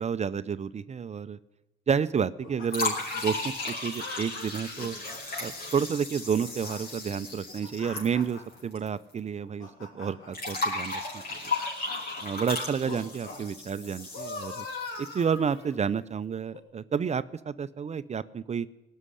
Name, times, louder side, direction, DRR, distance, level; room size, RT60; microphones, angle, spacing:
voice 1, 0.0-1.4 1.9-5.0 5.4-9.7 9.9-11.5 12.2-14.7 15.0-18.7, right 7 dB, 35° right, 14 dB, 0.5 m, -30 dB
sound 1, 2.4-3.4 4.0-5.7 6.2-6.8 7.3-8.6 9.3-10.3 11.2-12.2 12.8-13.4 13.8-15.9 16.5-16.6, left 4 dB, 90° left, 3.0 m, -41 dB
sound 2, 2.7-8.9 9.1-9.2 10.3-15.4, left 3 dB, 50° left, 5.2 m, -35 dB
18.0 x 6.4 x 9.9 m, 0.99 s
cardioid pair, 90°, 20 cm